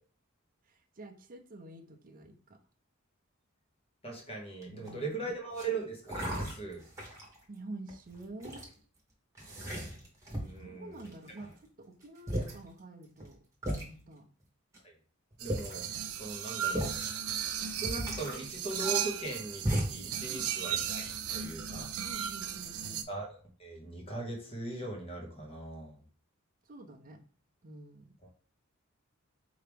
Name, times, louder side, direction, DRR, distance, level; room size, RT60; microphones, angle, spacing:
voice 1, 0.6-2.6 4.6-5.3 7.5-8.6 10.6-11.5 11.8-13.4 13.8-14.2 20.3-20.5 22.0-23.1 26.7-27.2 27.6-28.1, right 2 dB, 40° right, 2 dB, 0.6 m, -48 dB
voice 2, 4.0-6.8 10.4-11.1 14.8-14.9 15.4-15.9 16.2-16.9 17.6-21.9 23.1-26.0, right 3 dB, 30° left, 0 dB, 1.2 m, -40 dB
sound 1, 4.6-5.0 5.5-5.7 6.1-7.4 7.9-8.7 9.4-10.6 11.0-11.5 12.0-12.1 12.3-12.6 13.2-13.3 13.6-13.9 14.7-14.8 15.3-15.9 16.7-17.1 17.4-17.5 17.8-19.3 19.6-20.1 20.5-21.1, equal, 15° right, 1.3 m, -36 dB
sound 2, 15.4-23.0, right 9 dB, 90° right, 0.5 m, -36 dB
4.7 x 2.8 x 3.4 m, 0.40 s
head